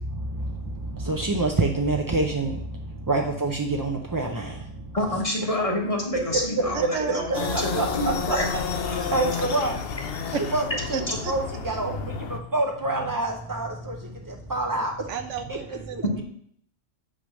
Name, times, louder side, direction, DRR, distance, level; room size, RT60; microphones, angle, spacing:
voice 1, 0.1-5.2 6.8-6.9 7.5-8.4 8.8-9.8 10.3-11.0 11.3-15.1 15.5-16.0, right 2 dB, 30° right, 2 dB, 0.3 m, -27 dB
voice 2, 4.9-8.5 9.0-9.1 11.1-11.2, left 1 dB, 30° left, 0 dB, 1.4 m, -28 dB
voice 3, 6.9-7.7 10.3-10.4 10.9-11.3 15.1-16.2, right 6 dB, 70° right, 8 dB, 1.0 m, -32 dB
sound 1, 7.3-12.4, left 6 dB, 55° left, 0.9 m, -31 dB
8.9 x 3.4 x 6.3 m, 0.65 s
omnidirectional pair, 1.3 m